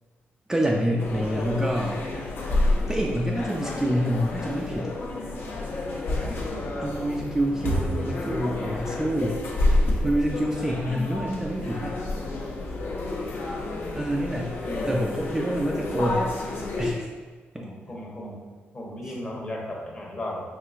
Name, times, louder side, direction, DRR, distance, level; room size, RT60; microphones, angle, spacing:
voice 1, 0.5-2.0 2.9-5.0 6.8-9.4 10.0-11.9 14.0-14.5 14.9-16.3 16.8-17.1 17.5-17.7 19.1-19.2, equal, 10° right, -1 dB, 0.3 m, -27 dB
sound 1, 1.0-16.9, left 2 dB, 70° left, 0.6 m, -29 dB
voice 2, 6.2-6.9 12.8-13.2 14.6-15.0 17.5-18.4 18.7-20.4, left 1 dB, 35° left, -2 dB, 0.9 m, -37 dB
4.6 x 3.2 x 2.5 m, 1.4 s
cardioid pair, 110°, 4 cm